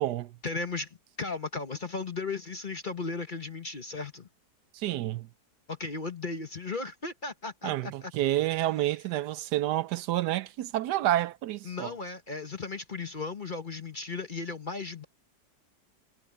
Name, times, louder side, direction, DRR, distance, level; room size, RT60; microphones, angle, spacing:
voice 1, 0.4-4.3 5.7-8.1 11.6-15.0, left 3 dB, 35° left, 1.1 m, -36 dB
voice 2, 4.7-5.3 7.6-11.9, right 14 dB, 75° right, 1.1 m, -29 dB
omnidirectional pair, 1.9 m